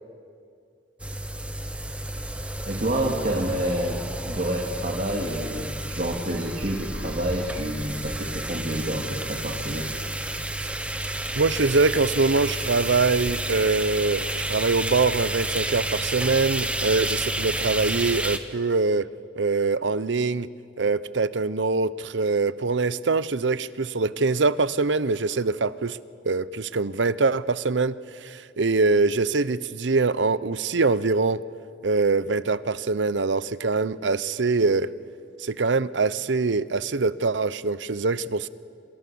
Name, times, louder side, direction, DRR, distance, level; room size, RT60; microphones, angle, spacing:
sound 1, 1.0-18.4, right 1 dB, 5° right, 1.2 m, -30 dB
voice 1, 2.7-9.9, right 1 dB, 45° right, -1 dB, 2.5 m, -28 dB
voice 2, 11.4-19.1 19.4-20.5 20.8-26.0 26.2-31.4 31.8-34.9 35.4-38.5, right 3 dB, 90° right, 17 dB, 0.7 m, -23 dB
27.5 x 27.5 x 7.0 m, 2.3 s
head